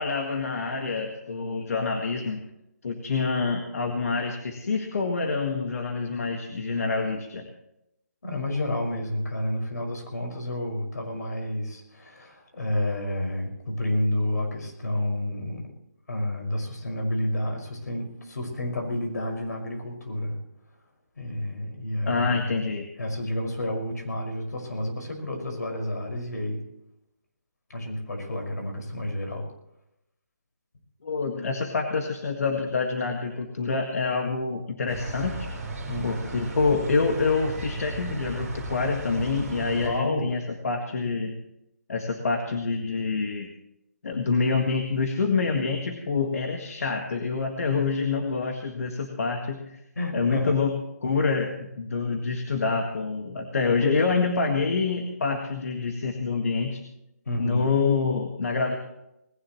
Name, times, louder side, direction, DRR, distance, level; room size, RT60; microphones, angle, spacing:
voice 1, 0.0-2.4 2.8-7.5 22.0-22.9 31.0-35.5 36.0-41.3 41.9-43.5 44.0-49.8 50.1-50.7 51.0-56.8 57.4-58.8, left 4 dB, 60° left, 3 dB, 1.8 m, -26 dB
voice 2, 8.2-15.7 16.1-20.4 21.2-22.6 23.0-26.6 27.7-29.5 35.9-36.1 39.7-40.3 50.0-50.6 57.3-57.7, left 1 dB, 75° left, 2 dB, 5.8 m, -30 dB
sound 1, 34.9-39.9, right 2 dB, 10° right, 4.3 m, -35 dB
19.5 x 17.5 x 3.2 m, 0.86 s
hypercardioid pair, 165°, 9 cm